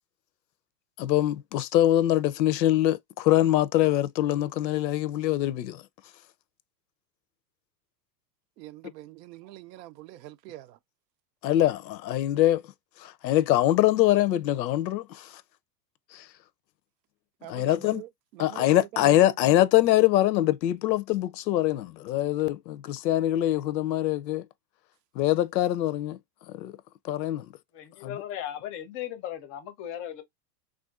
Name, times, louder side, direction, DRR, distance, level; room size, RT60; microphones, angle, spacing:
voice 1, 1.0-5.8 11.4-12.6 13.0-15.3 16.1-16.2 17.5-18.0 18.4-24.4 25.2-26.2 26.5-26.7 27.1-27.5 28.0-28.2, left 14 dB, 90° left, 0.6 m, -23 dB
voice 2, 8.6-10.8 17.4-19.4, right 15 dB, 75° right, 0.6 m, -44 dB
voice 3, 27.7-30.2, left 11 dB, 30° left, 0.5 m, -37 dB
3.4 x 2.5 x 2.3 m
supercardioid pair, 130°, 50 cm